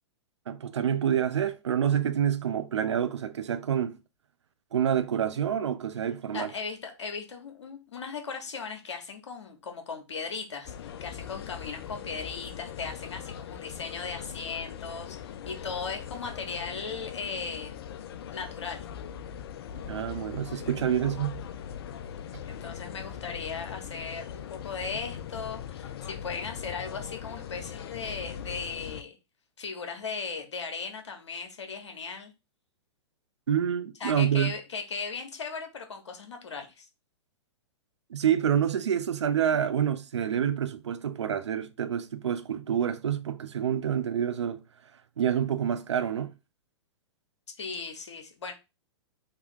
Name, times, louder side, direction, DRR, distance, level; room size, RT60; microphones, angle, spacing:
voice 1, 0.5-3.9 4.7-6.5 19.7-21.4 33.5-34.5 38.1-44.6 45.2-46.3, right 9 dB, 75° right, 0.6 m, -27 dB
voice 2, 6.3-17.7 18.3-18.9 22.5-29.2 29.6-32.3 34.0-36.9 47.6-48.5, left 5 dB, 75° left, 1.2 m, -37 dB
sound 1, 10.6-29.0, left 9 dB, 55° left, 0.4 m, -40 dB
3.6 x 2.8 x 3.7 m
figure-of-eight pair, 110°, 15 cm